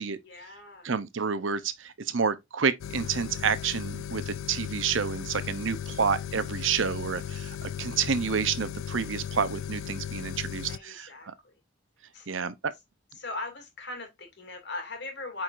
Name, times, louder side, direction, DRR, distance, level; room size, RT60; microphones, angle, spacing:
voice 1, 0.2-0.9 10.7-11.6 12.1-12.3 13.1-15.4, left 2 dB, 55° left, 2.5 m, -39 dB
voice 2, 0.8-11.3 12.3-12.7, right 6 dB, 70° right, 0.7 m, -29 dB
sound 1, 2.8-10.8, left 9 dB, 80° left, 0.3 m, -36 dB
8.5 x 4.6 x 2.5 m
head